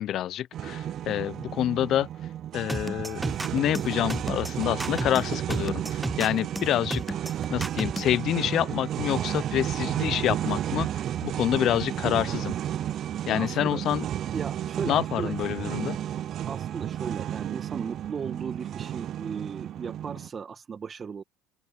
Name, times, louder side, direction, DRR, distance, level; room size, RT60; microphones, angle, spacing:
voice 1, 0.0-2.1 2.5-3.2 3.5-7.2 7.5-12.5 13.3-14.0 14.8-16.0, left 12 dB, 55° left, 0.7 m, -27 dB
sound 1, 0.5-20.3, right 11 dB, 50° right, 0.5 m, -32 dB
sound 2, 2.7-8.2, right 1 dB, 10° right, 0.7 m, -32 dB
voice 2, 13.3-13.8 14.3-15.3 16.4-21.2, right 6 dB, 35° right, 1.9 m, -36 dB
open air
hypercardioid pair, 75°, 0 cm